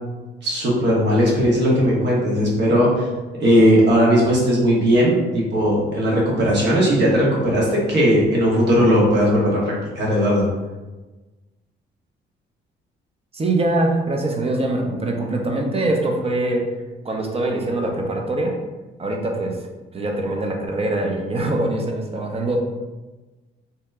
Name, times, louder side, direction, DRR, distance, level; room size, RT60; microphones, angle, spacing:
voice 1, 0.4-3.0 3.4-10.5, equal, 60° right, -4 dB, 1.2 m, -17 dB
voice 2, 13.3-16.7 17.0-18.5 19.0-19.6 19.9-22.6, right 2 dB, 30° right, 1 dB, 0.6 m, -23 dB
2.8 x 2.1 x 3.5 m, 1.2 s
cardioid pair, 90°, 20 cm